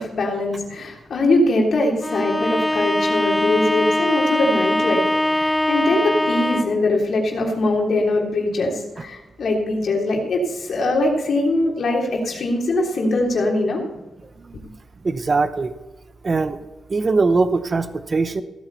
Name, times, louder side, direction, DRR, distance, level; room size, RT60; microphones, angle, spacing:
voice 1, 0.0-13.8, left 2 dB, 65° left, 0 dB, 3.4 m, -22 dB
Bowed string instrument, 2.0-6.9, left 1 dB, 5° left, 0.3 m, -21 dB
voice 2, 15.0-15.7 16.2-16.6 16.9-18.4, right 3 dB, 35° right, 11 dB, 0.8 m, -21 dB
16.5 x 8.7 x 4.1 m, 1.1 s
cardioid pair, 100°, 0 cm